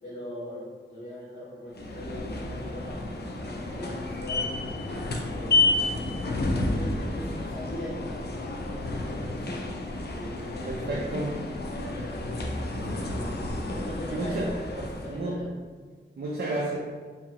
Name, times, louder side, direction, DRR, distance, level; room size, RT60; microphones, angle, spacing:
voice 1, 0.0-3.0 3.4-4.7 5.3-9.6 10.1-11.1 11.8-13.4 13.7-15.5, left 1 dB, 30° left, -15 dB, 1.5 m, -41 dB
sound 1, 1.7-15.2, left 2 dB, 55° left, 0.4 m, -31 dB
voice 2, 10.7-11.4 14.1-14.5 15.1-15.5 16.2-16.8, right 2 dB, 55° right, -3 dB, 0.5 m, -31 dB
3.6 x 2.9 x 2.8 m, 1.5 s
wide cardioid pair, 95°, 20 cm